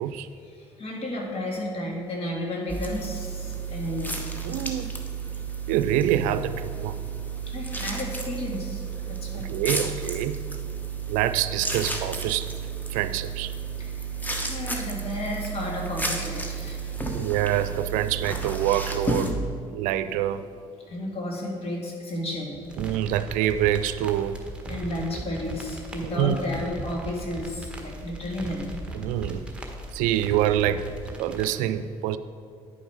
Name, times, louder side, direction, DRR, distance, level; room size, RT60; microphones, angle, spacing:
voice 1, 0.4-4.2 7.4-9.5 13.8-17.0 20.9-22.6 24.7-28.7, left 1 dB, 50° left, -1 dB, 2.1 m, -33 dB
sound 1, 2.7-19.3, right 4 dB, 15° left, 1.2 m, -32 dB
voice 2, 4.4-4.9 5.7-6.9 9.3-10.4 11.1-12.5 12.9-13.5 17.1-19.4 19.7-20.4 22.8-24.4 26.1-26.4 28.9-29.5 29.9-30.8 31.2-32.2, right 11 dB, 80° right, 13 dB, 0.4 m, -26 dB
sound 2, 22.6-31.5, right 2 dB, 10° right, 1.4 m, -39 dB
10.0 x 5.3 x 4.6 m, 2.4 s
supercardioid pair, 70°, 13 cm